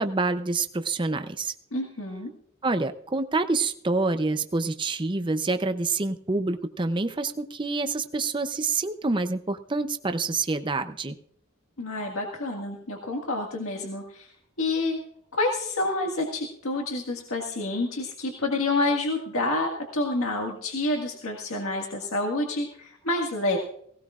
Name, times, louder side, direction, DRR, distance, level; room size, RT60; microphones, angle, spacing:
voice 1, 0.0-1.5 2.6-11.2, right 3 dB, 25° right, 9 dB, 0.6 m, -27 dB
voice 2, 1.7-2.3 11.8-14.3 14.6-15.0 15.3-23.6, left 2 dB, 90° left, 1 dB, 1.8 m, -28 dB
18.0 x 18.0 x 2.4 m, 0.68 s
head